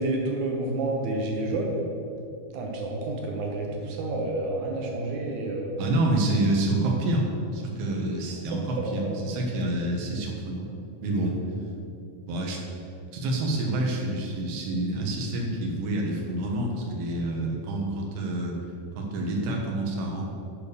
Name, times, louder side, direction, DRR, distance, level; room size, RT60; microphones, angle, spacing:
voice 1, 0.0-1.8 2.5-5.7 8.7-9.2, right 2 dB, 65° right, 0 dB, 2.1 m, -29 dB
voice 2, 5.8-10.7 11.0-11.4 12.3-12.6 13.1-18.6 19.0-20.3, right 1 dB, 80° right, 0 dB, 3.1 m, -27 dB
9.3 x 5.1 x 6.8 m, 2.5 s
omnidirectional pair, 4.4 m